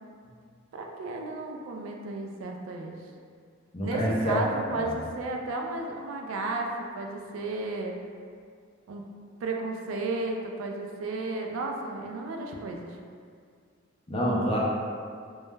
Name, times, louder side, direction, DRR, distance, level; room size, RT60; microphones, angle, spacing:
voice 1, 0.7-3.0 3.8-7.9 8.9-9.1 9.4-13.0, right 2 dB, 75° right, 2 dB, 0.3 m, -33 dB
voice 2, 3.7-4.4 4.7-4.9 14.1-14.6, equal, 30° left, -5 dB, 0.4 m, -27 dB
2.2 x 2.0 x 3.1 m, 2.1 s
head